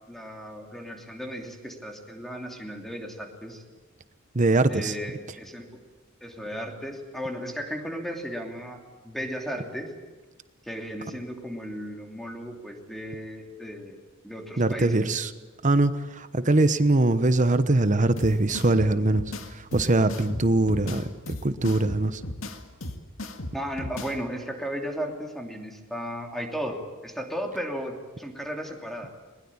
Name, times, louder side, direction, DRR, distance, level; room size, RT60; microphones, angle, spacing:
voice 1, 0.1-3.6 4.7-5.7 6.2-9.9 10.7-14.0 14.2-15.0 23.5-26.8 27.0-29.1, equal, ahead, 2 dB, 2.9 m, -35 dB
voice 2, 4.3-4.9 14.6-15.3 15.6-19.2 19.5-21.1 21.4-22.2, right 2 dB, 40° right, 12 dB, 1.0 m, -22 dB
sound 1, 18.2-24.2, left 1 dB, 80° left, 2.1 m, -36 dB
21.0 x 20.5 x 8.7 m, 1.3 s
head